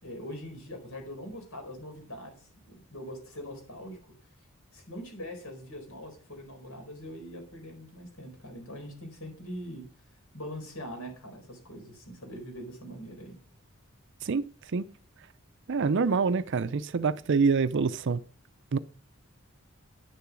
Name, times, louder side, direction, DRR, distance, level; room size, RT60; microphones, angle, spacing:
voice 1, 0.0-4.0 4.7-9.8 10.3-13.4, equal, 75° left, 4.6 m, -42 dB
voice 2, 14.2-14.9 15.7-18.2 18.7-18.8, right 5 dB, 60° right, 0.5 m, -26 dB
10.5 x 6.9 x 6.1 m
head